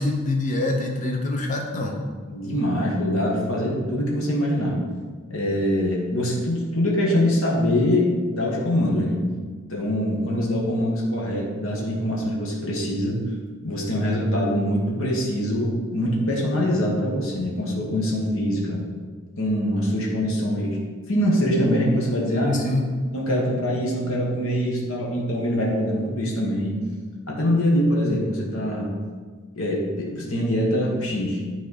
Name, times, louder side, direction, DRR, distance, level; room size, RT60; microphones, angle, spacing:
voice 1, 0.0-2.0 22.3-22.8, left 2 dB, 35° left, 2 dB, 0.9 m, -25 dB
voice 2, 2.3-4.8 5.3-9.2 9.7-13.3 13.6-18.8 19.4-20.8 21.1-22.5 23.1-26.8 27.3-28.9 29.6-31.4, equal, 75° left, -3 dB, 1.4 m, -23 dB
9.9 x 4.2 x 4.0 m, 1.5 s
head